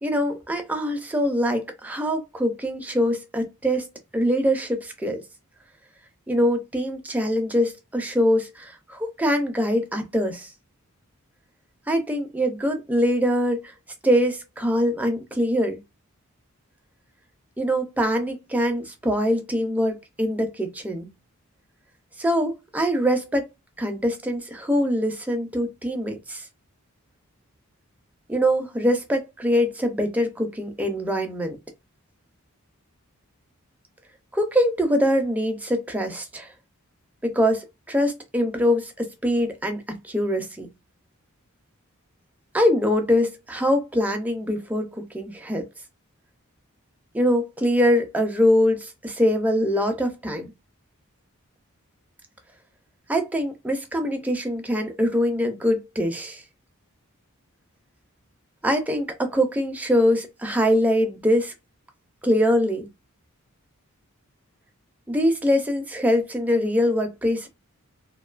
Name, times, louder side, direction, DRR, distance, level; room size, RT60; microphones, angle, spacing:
voice 1, 0.0-3.9 4.1-5.2 6.3-10.5 11.9-13.7 14.0-15.8 17.6-21.1 22.2-23.5 23.8-26.5 28.3-31.6 34.3-36.5 37.2-40.7 42.5-45.6 47.1-50.5 53.1-56.4 58.6-61.5 62.2-62.9 65.1-67.5, equal, 5° right, 0.4 m, -23 dB
2.5 x 2.2 x 2.3 m
head